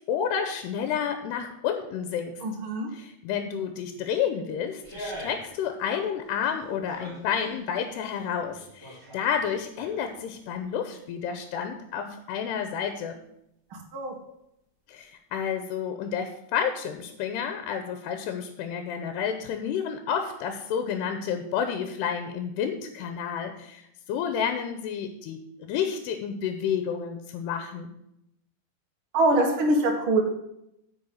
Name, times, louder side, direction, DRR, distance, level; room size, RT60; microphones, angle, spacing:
voice 1, 0.1-2.4 2.9-13.2 14.9-27.9, left 7 dB, 85° left, 7 dB, 2.8 m, -30 dB
voice 2, 2.4-2.9 13.7-14.1 29.1-30.2, right 2 dB, 50° right, 1 dB, 1.7 m, -24 dB
sound 1, 4.8-5.5 5.8-7.6 8.1-10.2 10.5-10.6, equal, 15° right, 3.4 m, -43 dB
8.8 x 6.3 x 7.7 m, 0.80 s
omnidirectional pair, 4.8 m